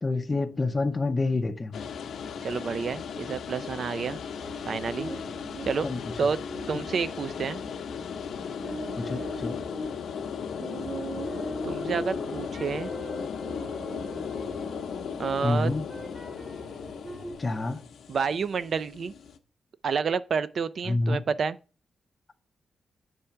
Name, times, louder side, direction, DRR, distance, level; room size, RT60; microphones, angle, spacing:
voice 1, 0.0-1.9 5.8-6.0 9.0-9.6 15.4-15.9 17.4-17.8 20.9-21.3, left 2 dB, 20° left, 0.5 m, -28 dB
sound 1, 1.7-19.4, left 7 dB, 85° left, 0.7 m, -36 dB
voice 2, 2.4-4.2 4.7-5.1 5.7-5.9 6.2-6.4 6.7-7.6 11.6-12.9 15.2-15.7 18.1-19.1 19.8-21.6, right 5 dB, 50° right, 0.4 m, -29 dB
sound 2, 4.4-17.3, right 2 dB, 20° right, 1.1 m, -41 dB
8.4 x 3.3 x 5.6 m
wide cardioid pair, 155°, 0 cm